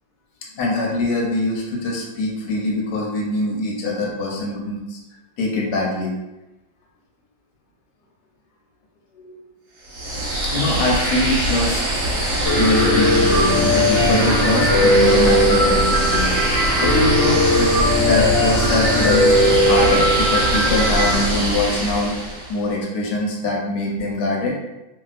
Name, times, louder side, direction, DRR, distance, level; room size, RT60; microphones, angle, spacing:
voice 1, 0.6-5.0 5.4-6.1 9.2-9.4 10.2-11.8 12.3-16.3 16.8-17.7 18.0-22.2 22.5-24.5, left 2 dB, 70° left, -2 dB, 1.2 m, -23 dB
sound 1, 9.8-22.6, right 1 dB, 65° right, 1.0 m, -22 dB
Piano, 12.5-21.2, left 1 dB, 40° left, 1.1 m, -18 dB
3.0 x 2.7 x 2.4 m, 0.99 s
omnidirectional pair, 2.1 m